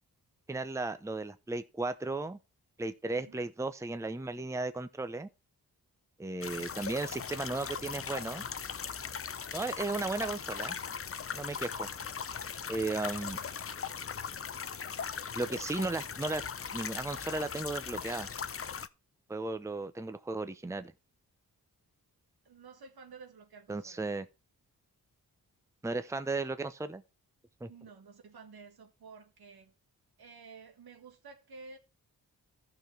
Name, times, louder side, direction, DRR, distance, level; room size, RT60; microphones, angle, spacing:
voice 1, 0.5-2.4 2.8-5.3 6.2-8.4 9.5-10.8 11.3-11.9 12.7-13.4 15.4-16.4 16.7-18.3 19.3-20.9 23.7-24.3 25.8-27.0 27.6-27.7, right 3 dB, 10° right, 0.7 m, -35 dB
sound 1, 6.4-18.9, left 7 dB, 35° left, 0.6 m, -39 dB
voice 2, 12.7-13.3 22.5-24.1 27.7-29.7 30.2-31.8, right 4 dB, 75° right, 1.7 m, -52 dB
14.0 x 5.9 x 3.3 m
cardioid pair, 55°, 37 cm